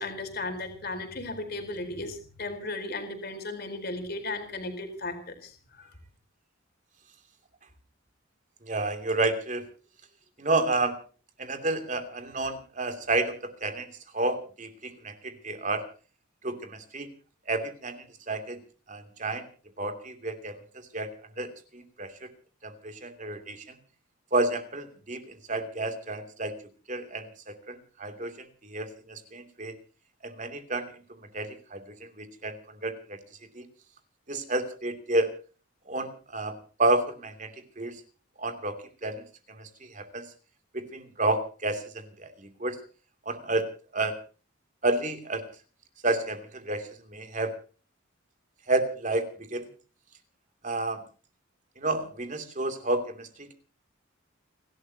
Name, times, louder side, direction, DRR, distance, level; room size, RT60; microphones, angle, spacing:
voice 1, 0.0-5.9, left 2 dB, 50° left, 6 dB, 4.2 m, -36 dB
voice 2, 8.6-9.6 10.4-10.9 11.4-13.9 14.1-15.9 16.4-17.1 17.5-18.6 18.9-19.4 19.8-20.6 20.9-21.1 21.4-22.3 22.6-23.8 24.3-26.5 26.9-28.3 28.6-29.7 30.2-30.9 31.3-33.2 33.5-33.7 34.3-35.3 35.9-38.0 38.4-40.2 40.7-42.8 43.2-43.7 43.9-44.2 44.8-45.4 46.0-47.5 48.7-49.7 50.6-51.0 51.8-53.5, right 2 dB, 35° right, 7 dB, 2.9 m, -30 dB
29.5 x 12.5 x 2.9 m, 0.38 s
head